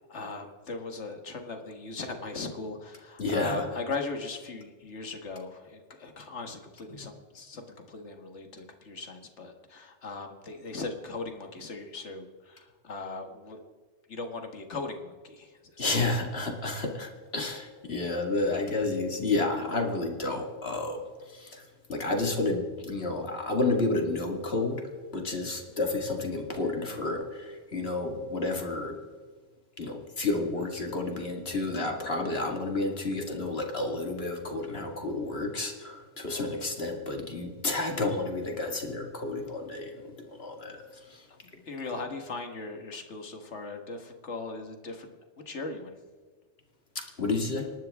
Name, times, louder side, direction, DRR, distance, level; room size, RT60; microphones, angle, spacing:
voice 1, 0.1-13.7 14.1-16.0 41.7-45.2 45.5-45.9, left 3 dB, 75° left, 5 dB, 1.9 m, -38 dB
voice 2, 3.2-3.7 6.9-7.1 15.8-24.8 25.1-29.0 29.8-41.3 47.0-47.7, left 2 dB, 60° left, 2 dB, 2.3 m, -31 dB
26.0 x 12.0 x 3.6 m, 1.5 s
omnidirectional pair, 1.2 m